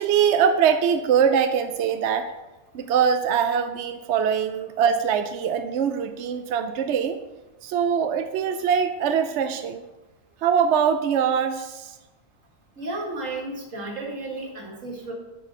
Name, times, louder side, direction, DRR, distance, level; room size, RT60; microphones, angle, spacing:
voice 1, 0.0-2.3 2.7-7.2 7.6-9.8 10.4-11.9, right 7 dB, 70° right, 8 dB, 0.8 m, -22 dB
voice 2, 12.8-15.1, right 2 dB, 85° right, -1 dB, 2.3 m, -33 dB
10.5 x 4.9 x 5.2 m, 1.1 s
omnidirectional pair, 1.3 m